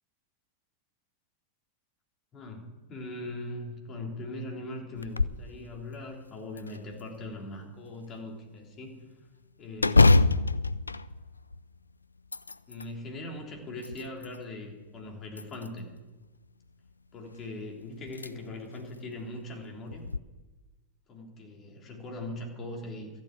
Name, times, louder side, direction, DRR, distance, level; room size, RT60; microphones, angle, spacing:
voice 1, 2.3-9.0 9.6-10.2 12.7-15.9 17.1-20.0 21.1-23.1, left 2 dB, 30° left, 1 dB, 3.4 m, -40 dB
sound 1, 5.0-5.5 5.9-6.0 6.6-7.4 9.8-11.8 12.2-12.9 13.5-14.4 15.3-16.0 17.4-17.5 18.1-18.3 18.8-18.9 19.9-20.2, left 3 dB, 80° left, 0.3 m, -25 dB
14.0 x 7.5 x 9.2 m, 1.2 s
figure-of-eight pair, 90°, 0 cm